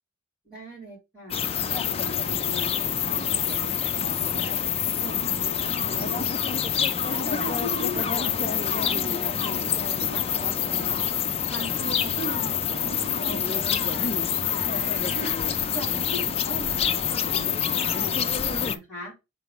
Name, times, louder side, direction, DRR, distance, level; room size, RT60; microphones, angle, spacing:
voice 1, 0.5-4.6 5.0-6.3 7.0-11.0 11.5-14.1 14.7-15.3 15.7-19.1, right 1 dB, ahead, -11 dB, 3.5 m, -39 dB
sound 1, 1.3-18.8, left 8 dB, 25° left, 0.4 m, -26 dB
4.6 x 3.9 x 5.3 m, 0.24 s
head